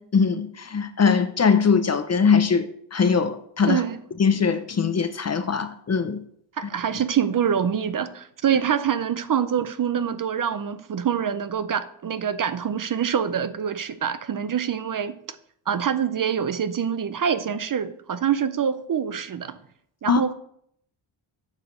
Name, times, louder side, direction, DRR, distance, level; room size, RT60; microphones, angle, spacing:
voice 1, 0.0-3.8 4.2-6.2 20.1-20.3, left 5 dB, 35° left, 0.6 m, -21 dB
voice 2, 3.7-4.0 6.6-15.2 15.7-19.6 20.0-20.3, right 8 dB, 45° right, 0.5 m, -25 dB
8.4 x 5.0 x 6.6 m
wide cardioid pair, 135°, 49 cm